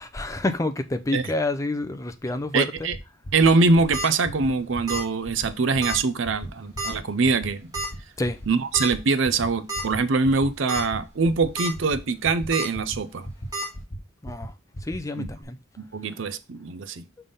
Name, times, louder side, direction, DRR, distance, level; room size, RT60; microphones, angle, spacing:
voice 1, 0.0-2.7 8.2-8.4 14.2-14.5 14.8-15.6, left 2 dB, 15° left, 0.5 m, -28 dB
voice 2, 2.5-3.0 3.3-7.7 8.5-13.3 15.2-15.3 15.8-17.0, right 4 dB, 60° right, 0.5 m, -23 dB
sound 1, 2.8-3.0 3.2-3.5 3.7-4.0 4.2-4.5 4.7-5.0 5.2-5.5 5.7-6.0 6.2-6.5 6.7-7.0 7.2-7.5 7.7-8.0 8.2-8.5 8.7-9.0 9.2-9.5 9.7-10.0 10.2-10.5 10.7-11.0 11.2-11.5 11.7-12.0 12.2-12.5 12.7-13.0 13.2-13.5 13.7-14.0 14.2-14.5 14.7-15.0 15.2-15.4, equal, 35° left, 1.0 m, -36 dB
sound 2, 3.6-4.1 4.9-5.1 5.4-5.5 5.8-6.0 6.8-7.1 7.7-7.9 8.7-8.9 9.3-9.4 9.7-9.8 10.5-10.8 11.2-11.7 12.5-12.6 13.5-13.6, right 1 dB, 15° right, 2.1 m, -29 dB
5.7 x 3.4 x 5.3 m
head